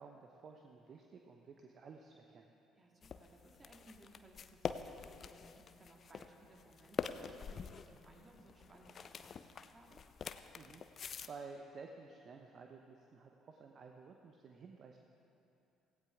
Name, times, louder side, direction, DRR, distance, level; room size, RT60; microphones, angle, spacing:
voice 1, 0.0-2.5 10.5-15.0, right 4 dB, 45° right, 3 dB, 0.9 m, -53 dB
voice 2, 2.8-10.0, right 2 dB, 30° right, 1 dB, 2.2 m, -62 dB
sound 1, 3.0-11.3, left 6 dB, 45° left, 0.5 m, -45 dB
17.0 x 15.5 x 3.6 m, 2.8 s
figure-of-eight pair, 50°, 0 cm